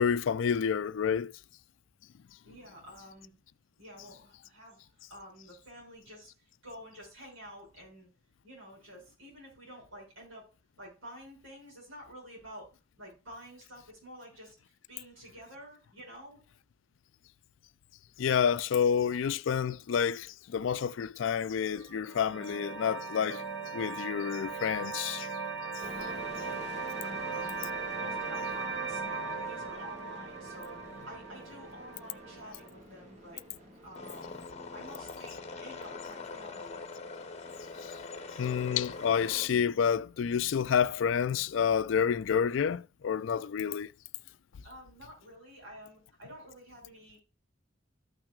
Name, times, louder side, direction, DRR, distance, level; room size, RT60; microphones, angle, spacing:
voice 1, 0.0-1.3 18.2-23.4 23.7-25.3 37.8-37.9 38.4-43.9, left 7 dB, 75° left, 0.4 m, -29 dB
voice 2, 2.4-3.3 3.8-8.1 8.4-10.5 10.8-12.7 13.0-16.4 26.0-26.7 27.0-33.4 33.8-36.8 44.6-47.2, equal, 85° right, 5.7 m, -50 dB
sound 1, 21.6-32.7, right 4 dB, 60° right, 1.4 m, -38 dB
sound 2, 25.8-39.3, equal, 35° right, 1.8 m, -50 dB
sound 3, 33.9-39.5, left 4 dB, 35° left, 0.8 m, -43 dB
14.0 x 5.9 x 2.3 m
head